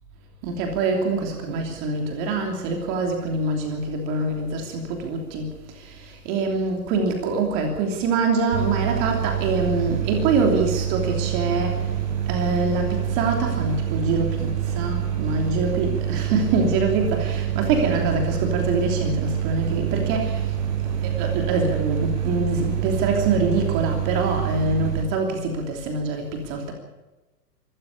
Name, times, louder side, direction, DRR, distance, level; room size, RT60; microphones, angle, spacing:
voice 1, 0.4-11.9 12.3-20.5 21.0-26.7, right 3 dB, 25° right, 2 dB, 3.1 m, -25 dB
sound 1, 8.5-25.0, right 10 dB, 55° right, 6.2 m, -26 dB
23.5 x 13.5 x 8.5 m, 1.1 s
hypercardioid pair, 160°, 48 cm